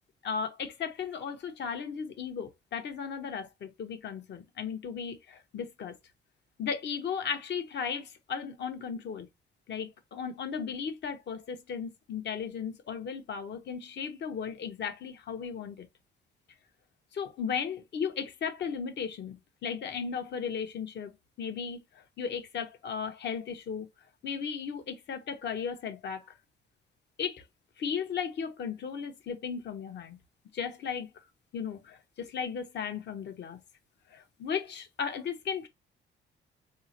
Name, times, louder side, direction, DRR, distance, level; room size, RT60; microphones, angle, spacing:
voice 1, 0.2-5.9 6.6-9.3 9.7-15.9 17.1-21.1 21.4-23.9 24.2-26.4 27.2-27.4 27.8-30.2 30.5-31.1 31.5-33.6 34.1-35.7, left 6 dB, 60° left, 1.1 m, -36 dB
4.3 x 3.6 x 2.9 m
cardioid pair, 90°, 20 cm